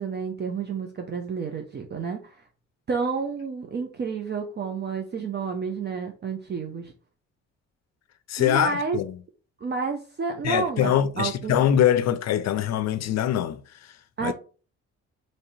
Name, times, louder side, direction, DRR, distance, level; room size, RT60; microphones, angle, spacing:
voice 1, 0.0-2.4 2.9-6.9 8.4-9.0 9.6-11.6 14.2-14.3, right 5 dB, 35° right, 0.6 m, -30 dB
voice 2, 8.3-9.2 10.4-13.9 14.2-14.3, left 10 dB, 60° left, 0.5 m, -23 dB
3.2 x 2.8 x 4.0 m
cardioid pair, 90°, 30 cm